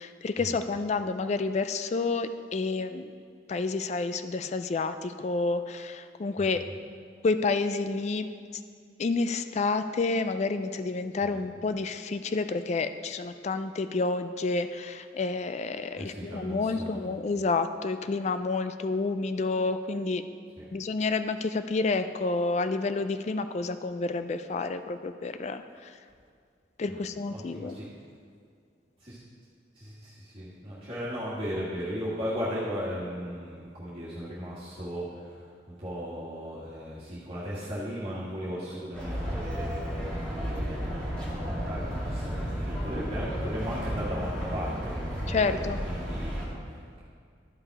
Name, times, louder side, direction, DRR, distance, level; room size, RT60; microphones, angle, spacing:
voice 1, 0.0-3.1 3.5-6.6 7.2-8.3 9.0-20.2 20.7-25.9 26.8-27.8 45.3-45.8, left 3 dB, 40° left, 10 dB, 0.3 m, -29 dB
voice 2, 15.9-17.0 20.6-20.7 26.9-27.9 29.0-29.2 29.7-41.0 41.4-46.3 46.6-47.0, equal, 30° right, -10 dB, 1.8 m, -37 dB
sound 1, 38.9-46.5, equal, 5° left, 2.3 m, -33 dB
12.5 x 5.5 x 4.8 m, 2.1 s
head